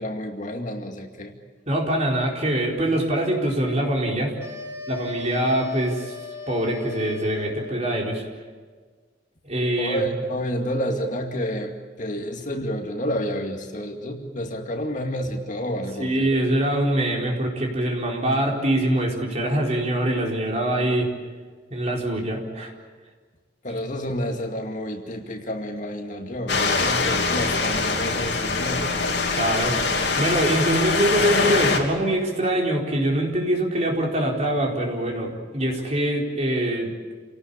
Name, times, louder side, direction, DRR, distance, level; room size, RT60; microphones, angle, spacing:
voice 1, 0.0-1.3 9.8-16.3 23.6-28.9, equal, 45° left, 3 dB, 2.3 m, -29 dB
voice 2, 1.7-4.3 4.9-6.1 6.5-8.2 9.4-10.0 16.0-21.1 21.7-22.7 29.3-37.1, right 1 dB, 35° right, 0 dB, 4.4 m, -24 dB
sound 1, 4.4-7.9, left 3 dB, 15° right, 3.3 m, -38 dB
sound 2, 26.5-31.8, left 4 dB, 65° left, 3.3 m, -23 dB
28.5 x 18.0 x 8.5 m, 1.5 s
head